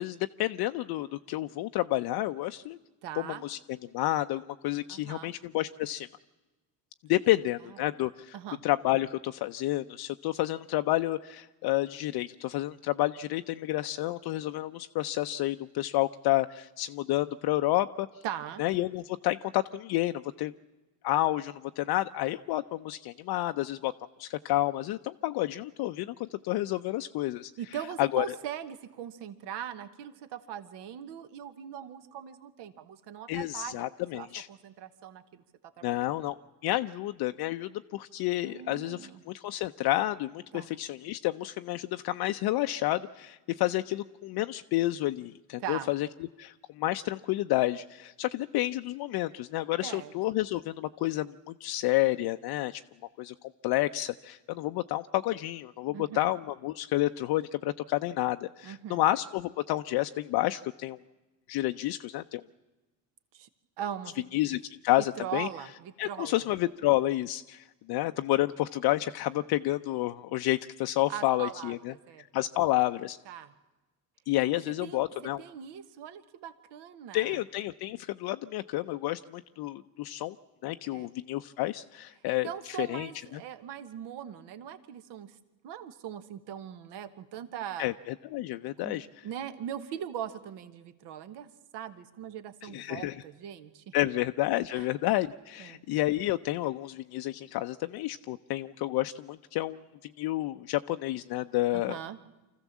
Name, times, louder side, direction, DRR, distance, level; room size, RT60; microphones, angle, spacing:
voice 1, 0.0-2.8 3.2-3.6 3.9-6.1 7.1-8.4 8.6-18.1 18.6-20.5 21.0-23.9 24.2-27.5 28.0-28.2 33.3-34.5 35.8-36.3 36.6-46.1 46.4-52.8 53.2-53.3 53.6-61.0 61.5-62.4 64.3-65.5 66.0-73.2 74.3-75.4 77.1-80.4 80.6-83.4 87.8-89.1 92.6-93.2 93.9-102.0, left 16 dB, 60° left, 8 dB, 0.6 m, -30 dB
voice 2, 3.0-3.4 4.9-5.3 7.2-7.3 8.3-8.6 18.2-18.6 27.6-33.9 34.1-36.1 38.4-39.2 40.5-40.7 45.6-45.9 49.8-50.1 55.9-56.3 58.6-59.0 63.3-63.5 63.8-64.2 65.2-66.4 71.1-72.2 73.3-73.5 74.8-77.4 80.9-81.1 82.4-85.4 85.6-87.9 88.8-91.5 91.7-93.9 94.7-94.8 95.6-95.8 101.7-102.2, right 9 dB, 65° right, 11 dB, 1.4 m, -40 dB
25.0 x 14.5 x 7.3 m, 1.1 s
supercardioid pair, 95°, 44 cm